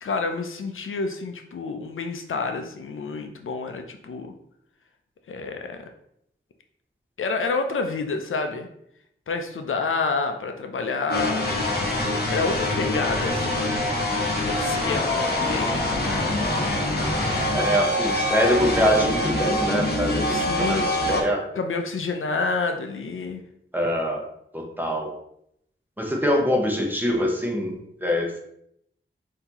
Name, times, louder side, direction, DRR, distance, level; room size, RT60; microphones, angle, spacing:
voice 1, 0.0-4.3 5.3-5.9 7.2-8.7 9.3-11.5 12.3-13.7 14.5-15.9 20.3-21.3 21.6-23.4, left 4 dB, 75° left, 5 dB, 0.5 m, -28 dB
sound 1, 11.1-21.2, left 1 dB, 50° left, 1.0 m, -24 dB
voice 2, 17.5-21.4 23.7-24.2 24.5-25.1 26.0-28.4, equal, 10° right, 0 dB, 0.9 m, -24 dB
5.6 x 2.8 x 2.9 m, 0.74 s
wide cardioid pair, 100°, 21 cm